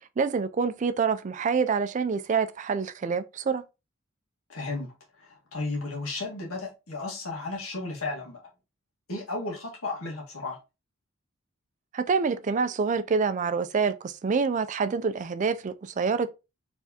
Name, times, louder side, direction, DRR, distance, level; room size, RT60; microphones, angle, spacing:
voice 1, 0.2-3.6 11.9-16.3, right 5 dB, 35° right, 0.3 m, -26 dB
voice 2, 4.5-4.9 5.2-8.4 9.1-10.6, left 3 dB, 85° left, 1.7 m, -34 dB
4.6 x 3.4 x 2.8 m
head